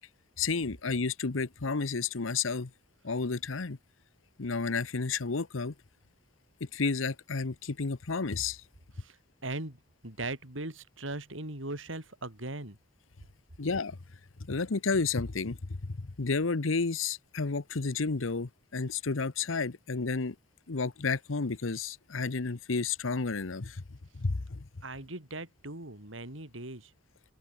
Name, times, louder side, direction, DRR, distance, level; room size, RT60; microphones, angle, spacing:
voice 1, 0.4-2.7 3.0-3.8 4.4-5.7 6.6-8.6 13.6-14.0 14.5-20.3 20.7-23.8 24.2-24.7, left 4 dB, 85° left, 1.0 m, -31 dB
voice 2, 9.0-12.8 24.8-26.9, right 2 dB, 75° right, 4.7 m, -39 dB
open air
head